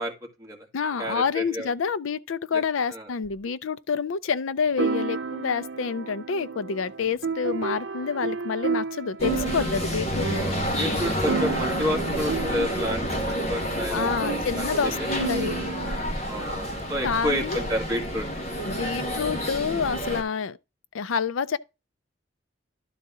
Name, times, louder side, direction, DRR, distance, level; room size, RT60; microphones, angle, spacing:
voice 1, 0.0-0.7 1.0-1.7 2.9-3.1 9.6-9.8 10.3-15.1 16.2-18.3, equal, 15° right, 2.1 m, -31 dB
voice 2, 0.7-10.4 13.9-15.6 17.0-17.6 18.7-20.6 20.9-21.6, left 6 dB, 90° left, 0.5 m, -28 dB
sound 1, 3.2-3.3 4.8-16.0, right 4 dB, 65° right, 0.5 m, -32 dB
sound 2, 9.2-20.2, equal, 35° left, 1.4 m, -29 dB
11.5 x 4.0 x 3.6 m
head